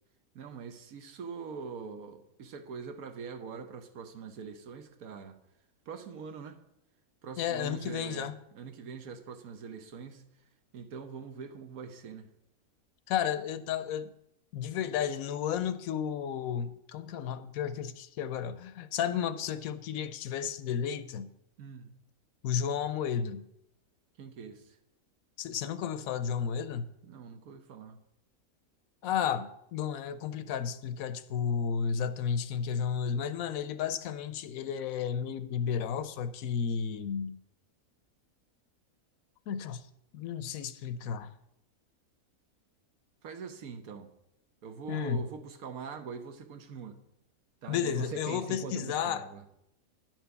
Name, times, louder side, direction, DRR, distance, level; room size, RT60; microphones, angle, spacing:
voice 1, 0.3-5.4 5.9-6.6 7.2-10.2 10.7-12.3 21.6-21.9 24.2-24.6 27.0-28.0 43.2-44.1 44.6-47.0 47.6-49.4, right 5 dB, 80° right, 1.3 m, -43 dB
voice 2, 7.4-8.3 13.1-14.1 14.5-21.3 22.4-23.4 25.4-26.9 29.0-37.4 39.5-39.8 40.1-41.3 44.9-45.3 47.7-49.3, left 8 dB, 75° left, 1.0 m, -32 dB
10.5 x 4.5 x 6.8 m
omnidirectional pair, 1.5 m